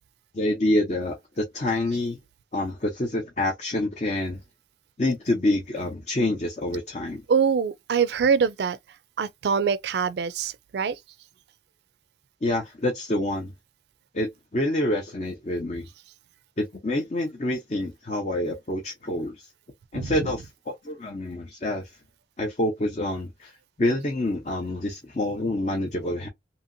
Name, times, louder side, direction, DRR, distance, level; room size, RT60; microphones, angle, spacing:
voice 1, 0.3-2.2 2.5-4.4 5.0-7.2 12.4-13.5 14.1-15.9 16.6-19.5 19.9-21.9 22.4-23.5 23.8-26.3, left 1 dB, 40° left, 0.7 m, -27 dB
voice 2, 7.3-8.8 9.2-10.9 19.9-20.1, right 6 dB, 70° right, 0.3 m, -24 dB
2.8 x 2.7 x 2.5 m
head